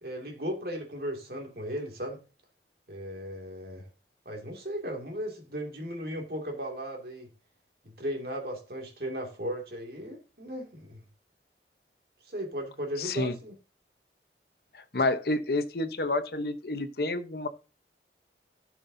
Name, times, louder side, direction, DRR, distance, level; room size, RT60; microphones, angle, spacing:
voice 1, 0.0-2.2 2.9-3.9 4.3-7.3 7.8-11.0 12.2-13.6, equal, 60° right, 2.3 m, -36 dB
voice 2, 13.0-13.3 14.9-17.5, left 2 dB, 60° left, 0.9 m, -29 dB
15.5 x 6.0 x 2.7 m
head